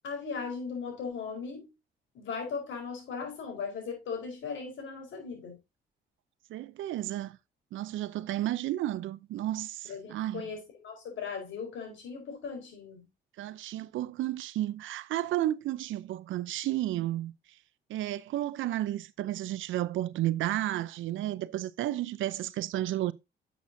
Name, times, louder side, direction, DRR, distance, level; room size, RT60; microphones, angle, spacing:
voice 1, 0.0-1.7 2.1-5.6 9.8-13.0, left 5 dB, 75° left, 4.4 m, -38 dB
voice 2, 6.5-7.4 7.7-10.5 13.4-17.3 17.9-23.1, right 14 dB, 80° right, 0.6 m, -32 dB
10.5 x 7.2 x 2.7 m
cardioid pair, 90°, 20 cm